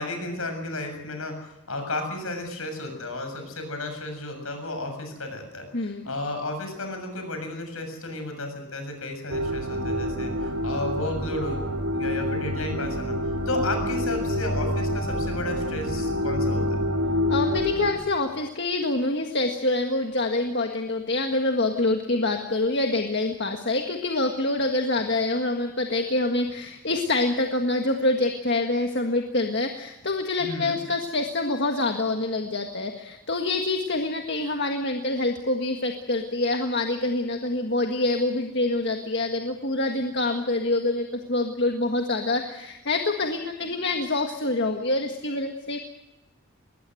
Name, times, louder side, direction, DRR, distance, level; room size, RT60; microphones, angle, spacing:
voice 1, 0.0-11.6 11.9-13.2 13.5-16.6 30.4-30.8, left 2 dB, 70° left, 6 dB, 7.2 m, -33 dB
voice 2, 5.7-6.1 17.3-45.8, left 2 dB, 50° left, 3 dB, 1.7 m, -26 dB
sound 1, 9.3-17.9, left 1 dB, 80° right, 4.1 m, -27 dB
21.5 x 20.0 x 7.9 m, 0.95 s
head